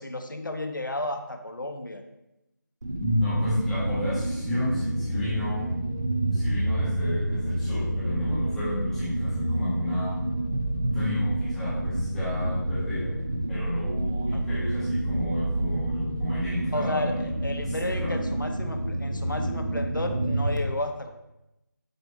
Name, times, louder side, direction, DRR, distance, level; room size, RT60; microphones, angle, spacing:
voice 1, 0.0-2.0 14.3-14.4 16.7-21.1, left 1 dB, 80° left, 5 dB, 1.1 m, -32 dB
sound 1, 2.8-20.6, right 1 dB, 65° right, 1.2 m, -28 dB
voice 2, 3.0-5.7 6.3-10.2 10.8-13.1 13.5-18.2, left 1 dB, 5° left, -10 dB, 1.3 m, -31 dB
8.1 x 3.9 x 4.5 m, 0.90 s
figure-of-eight pair, 165°, 10 cm